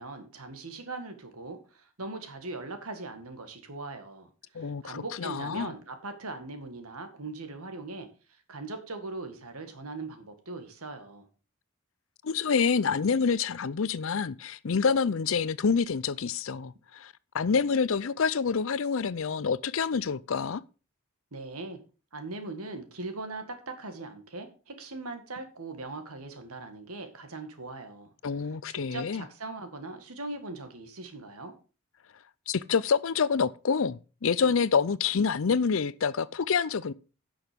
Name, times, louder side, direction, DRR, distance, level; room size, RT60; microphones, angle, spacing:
voice 1, 0.0-11.3 21.3-21.8 22.1-28.1 28.7-31.5, right 3 dB, 80° right, 2.0 m, -40 dB
voice 2, 4.5-5.7 12.2-20.6 28.2-29.2 32.5-36.9, left 5 dB, 60° left, 0.5 m, -27 dB
10.5 x 6.3 x 5.2 m
head